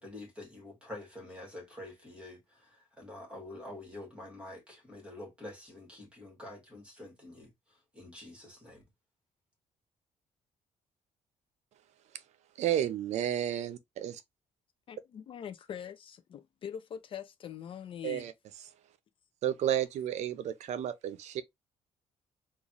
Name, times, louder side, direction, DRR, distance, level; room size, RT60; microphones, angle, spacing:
voice 1, 0.0-7.5 7.9-8.8, left 1 dB, 10° right, 1.9 m, -47 dB
voice 2, 12.6-14.2 18.0-18.3 19.4-21.4, right 11 dB, 70° right, 0.5 m, -32 dB
voice 3, 14.9-18.3, left 8 dB, 45° left, 0.4 m, -43 dB
3.9 x 2.4 x 2.9 m
cardioid pair, 155°, 12 cm